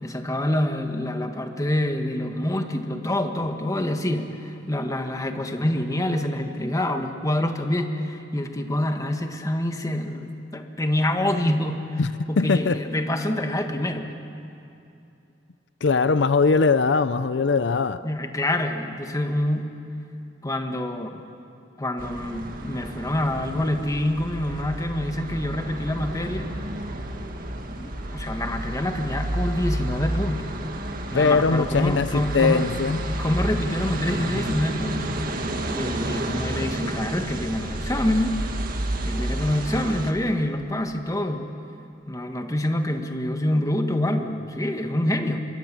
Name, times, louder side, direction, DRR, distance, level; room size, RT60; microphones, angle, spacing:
voice 1, 0.0-10.3 10.5-12.0 12.3-14.1 18.0-19.7 20.4-21.2 21.8-26.5 27.7-30.5 31.1-32.7 33.2-35.1 35.7-38.4 39.0-41.5 42.1-45.4, left 1 dB, 20° left, 5 dB, 1.6 m, -26 dB
voice 2, 12.4-12.8 15.8-18.0 31.1-33.0, left 4 dB, 70° left, 13 dB, 0.6 m, -21 dB
sound 1, 22.0-40.1, right 1 dB, 50° right, 1.9 m, -31 dB
26.5 x 22.0 x 7.6 m, 2.7 s
head